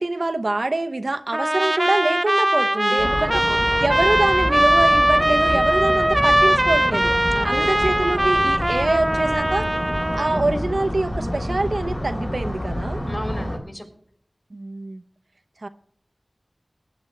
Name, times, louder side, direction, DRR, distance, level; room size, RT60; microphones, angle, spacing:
voice 1, 0.0-3.4 3.8-7.1 7.4-9.7 10.1-13.0 14.5-15.0 15.6-15.7, right 2 dB, 70° right, 7 dB, 0.7 m, -25 dB
Trumpet, 1.3-10.4, right 1 dB, 25° right, 0.4 m, -20 dB
voice 2, 2.9-4.0 7.3-7.9 13.1-13.9, equal, 25° left, 4 dB, 3.4 m, -33 dB
sound 1, 3.0-13.6, left 1 dB, 45° left, 3.8 m, -28 dB
18.5 x 9.6 x 3.1 m, 0.63 s
wide cardioid pair, 50°, 0 cm